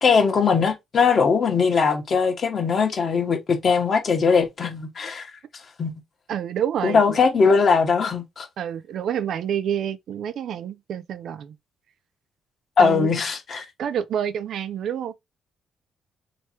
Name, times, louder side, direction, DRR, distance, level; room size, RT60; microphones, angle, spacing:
voice 1, 0.0-5.3 5.8-5.9 6.8-8.5 12.8-13.6, left 5 dB, 50° left, 1.1 m, -20 dB
voice 2, 6.3-7.2 8.6-11.5 12.8-13.1 13.8-15.1, right 9 dB, 70° right, 0.4 m, -28 dB
3.3 x 3.0 x 2.8 m
cardioid pair, 90°, 0 cm